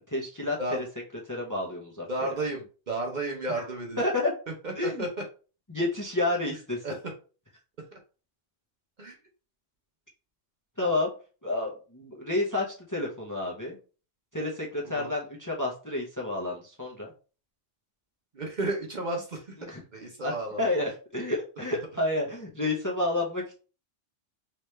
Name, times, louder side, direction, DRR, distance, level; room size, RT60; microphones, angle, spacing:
voice 1, 0.1-0.9 1.3-2.1 4.0-4.3 4.8-5.1 5.7-6.8 10.8-11.1 11.4-13.8 14.3-17.1 19.6-19.8 20.2-20.3 20.6-23.5, left 2 dB, 20° left, -1 dB, 0.7 m, -30 dB
voice 2, 2.1-4.0 4.6-5.1 6.8-7.0 9.0-9.1 14.9-15.1 18.3-19.6 19.9-20.7, right 2 dB, 45° right, 1 dB, 0.8 m, -32 dB
3.3 x 3.0 x 3.2 m, 0.35 s
omnidirectional pair, 1.2 m